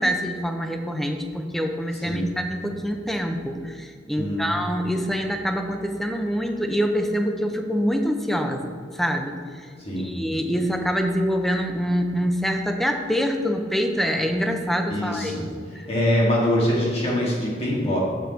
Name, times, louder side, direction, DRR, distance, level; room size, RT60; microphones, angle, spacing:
voice 1, 0.0-8.6 8.9-9.3 10.0-15.3, equal, ahead, 4 dB, 0.5 m, -25 dB
voice 2, 1.9-2.3 4.2-4.5 9.8-10.1 14.9-15.4 15.9-18.0, left 1 dB, 35° left, -4 dB, 1.8 m, -23 dB
6.7 x 6.0 x 4.0 m, 2.1 s
head